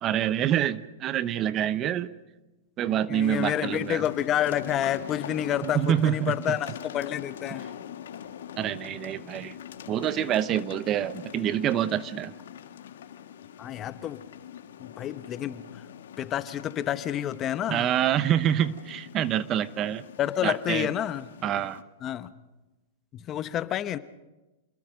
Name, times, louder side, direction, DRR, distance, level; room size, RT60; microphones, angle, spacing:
voice 1, 0.0-2.1 2.8-4.0 5.6-6.3 8.6-9.6 9.9-12.3 17.7-20.0 20.4-20.9 21.4-21.8, right 10 dB, 30° right, 15 dB, 0.9 m, -26 dB
voice 2, 3.1-7.6 13.6-14.2 14.8-15.8 16.2-17.9 20.2-21.3 22.0-22.3 23.1-24.0, left 11 dB, 30° left, 13 dB, 1.0 m, -29 dB
sound 1, 3.2-21.8, left 9 dB, 80° left, 1.8 m, -43 dB
28.0 x 21.0 x 5.3 m, 1.1 s
hypercardioid pair, 135°, 0 cm